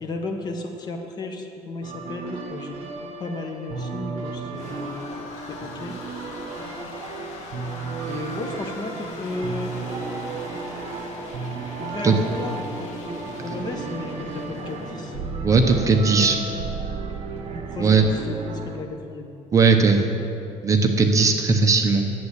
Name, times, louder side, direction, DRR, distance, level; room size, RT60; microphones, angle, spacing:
voice 1, 0.0-2.8 3.2-5.0 5.5-5.9 8.0-9.7 11.8-13.1 13.4-15.2 17.5-19.3, left 2 dB, 35° left, 3 dB, 1.4 m, -33 dB
sound 1, 1.8-18.8, right 4 dB, 60° right, 1.2 m, -34 dB
sound 2, 4.0-15.2, left 3 dB, 70° left, 1.9 m, -40 dB
voice 2, 15.4-16.4 17.8-18.0 19.5-20.1 20.6-22.1, right 4 dB, 25° right, 4 dB, 0.9 m, -18 dB
11.0 x 8.2 x 8.2 m, 2.8 s
cardioid pair, 145°, 12 cm